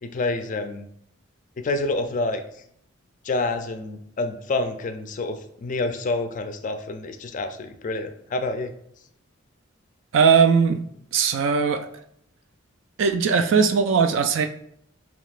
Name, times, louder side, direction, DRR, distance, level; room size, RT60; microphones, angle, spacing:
voice 1, 0.0-0.9 1.6-2.4 3.2-8.7, left 2 dB, 40° left, 7 dB, 0.4 m, -28 dB
voice 2, 10.1-10.8 11.1-11.9 13.0-14.5, right 6 dB, 65° right, 7 dB, 0.3 m, -19 dB
5.2 x 2.9 x 2.4 m, 0.69 s
head